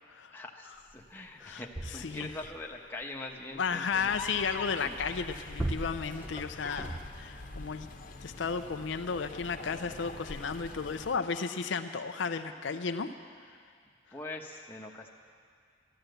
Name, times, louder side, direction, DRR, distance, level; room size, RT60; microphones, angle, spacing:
voice 1, 0.3-4.1 4.8-5.0 14.1-15.1, left 2 dB, 10° left, 0 dB, 1.0 m, -43 dB
sound 1, 1.1-1.2 1.4-2.8 5.0-7.5 8.2-8.3, right 1 dB, 10° right, 0.5 m, -39 dB
voice 2, 1.4-2.3 3.6-7.9 8.2-13.1, left 5 dB, 65° left, 7 dB, 0.5 m, -34 dB
sound 2, 3.9-11.2, left 3 dB, 40° left, 1.0 m, -44 dB
12.5 x 12.5 x 7.9 m, 2.2 s
head